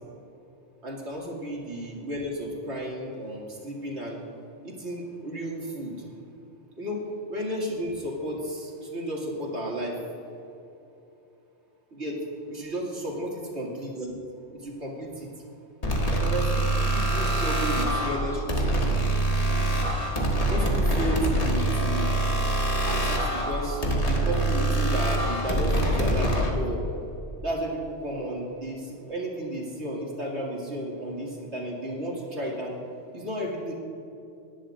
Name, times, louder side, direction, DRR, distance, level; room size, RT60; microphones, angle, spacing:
voice 1, 0.8-4.2 4.6-5.9 6.8-7.0 7.3-10.0 11.9-12.2 12.5-14.1 14.5-15.3 16.2-18.8 20.5-22.1 22.8-26.8 27.4-32.8 33.1-33.7, right 1 dB, 70° right, -3 dB, 2.6 m, -33 dB
sound 1, 15.8-26.5, right 1 dB, 35° left, 1.5 m, -25 dB
18.5 x 10.5 x 2.5 m, 2.9 s
omnidirectional pair, 1.2 m